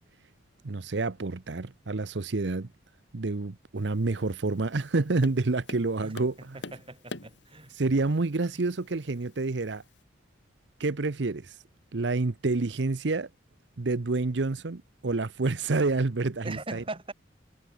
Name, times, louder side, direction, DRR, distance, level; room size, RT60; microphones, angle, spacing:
voice 1, 0.6-2.7 3.1-6.6 7.7-9.8 10.8-11.6 11.9-13.3 13.8-16.8, right 3 dB, 70° right, 0.8 m, -28 dB
Tap, 3.8-10.0, left 2 dB, 75° left, 3.6 m, -47 dB
voice 2, 6.5-7.7 16.4-17.1, right 2 dB, 30° right, 3.5 m, -40 dB
head